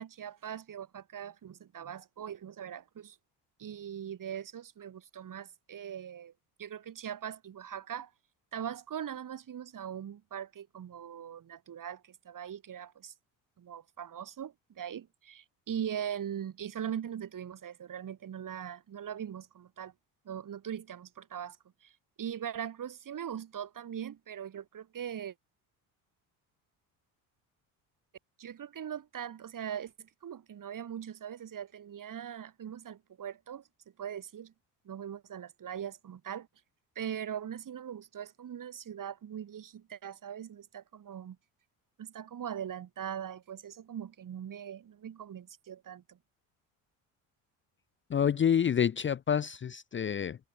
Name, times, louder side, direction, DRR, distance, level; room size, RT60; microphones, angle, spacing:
voice 1, 0.0-3.2 3.6-6.3 6.6-8.1 8.5-13.1 13.6-19.9 20.3-21.6 21.8-21.9 22.2-25.3 28.4-33.6 34.0-34.5 34.9-36.5 37.0-41.4 42.0-46.2, right 9 dB, 50° right, 6.9 m, -41 dB
voice 2, 48.1-50.4, left 8 dB, 30° left, 0.6 m, -28 dB
supercardioid pair, 80°, 42 cm